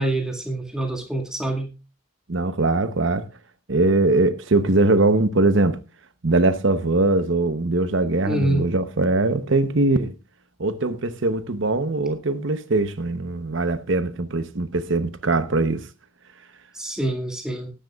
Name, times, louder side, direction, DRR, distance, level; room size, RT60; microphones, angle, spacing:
voice 1, 0.0-1.7 8.2-8.7 16.7-17.7, right 1 dB, 5° right, 2.0 m, -26 dB
voice 2, 2.3-3.2 3.7-5.8 6.2-10.1 10.6-15.8, right 2 dB, 65° right, 0.9 m, -21 dB
19.5 x 10.0 x 2.4 m
head